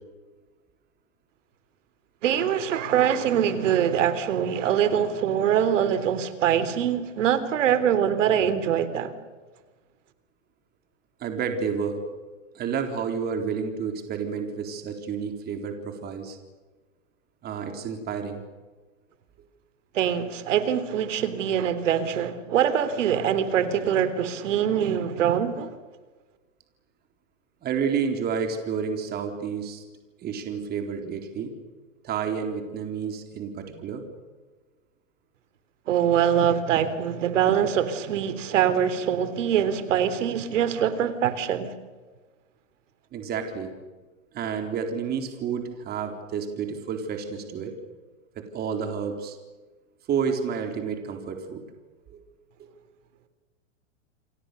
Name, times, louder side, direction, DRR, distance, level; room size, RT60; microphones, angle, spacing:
voice 1, 2.2-9.1 19.9-25.7 35.9-41.7, right 9 dB, 70° right, 12 dB, 3.6 m, -23 dB
voice 2, 11.2-12.0 12.5-16.4 17.4-18.4 27.6-29.8 30.2-31.5 32.0-34.0 43.1-43.7 44.3-47.7 48.5-49.4 50.1-51.6 52.1-52.2, right 6 dB, 25° right, 5 dB, 3.9 m, -30 dB
29.5 x 24.5 x 6.9 m, 1.3 s
hypercardioid pair, 150°, 38 cm